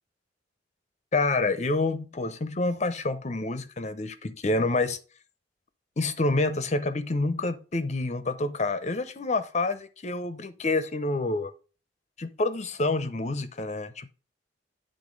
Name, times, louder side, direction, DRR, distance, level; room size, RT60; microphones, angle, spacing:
voice 1, 1.1-5.0 6.0-11.5 12.2-14.1, left 2 dB, 40° left, 0.7 m, -28 dB
9.7 x 3.8 x 5.1 m
head